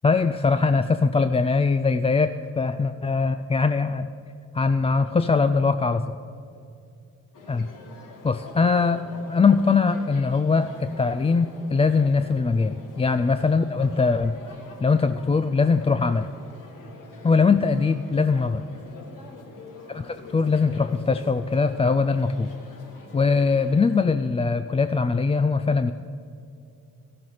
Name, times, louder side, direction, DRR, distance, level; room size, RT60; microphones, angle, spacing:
voice 1, 0.0-4.1 4.5-6.2 7.5-7.7 8.2-14.4 14.8-16.3 17.2-18.6 19.9-22.5 23.1-25.9, left 4 dB, 20° left, 10 dB, 0.3 m, -21 dB
sound 1, 7.3-24.0, left 3 dB, 70° left, 1.7 m, -45 dB
14.0 x 7.7 x 5.6 m, 2.5 s
supercardioid pair, 55°, 33 cm